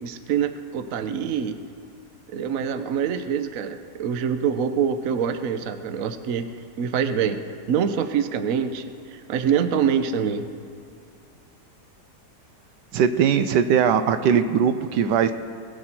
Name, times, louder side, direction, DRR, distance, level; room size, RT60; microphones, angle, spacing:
voice 1, 0.0-1.6 2.3-6.5 6.8-7.4 7.7-10.5, right 7 dB, 60° right, 9 dB, 1.0 m, -25 dB
voice 2, 12.9-15.3, right 7 dB, 80° right, 9 dB, 1.2 m, -20 dB
20.5 x 8.8 x 4.3 m, 2.5 s
omnidirectional pair, 1.9 m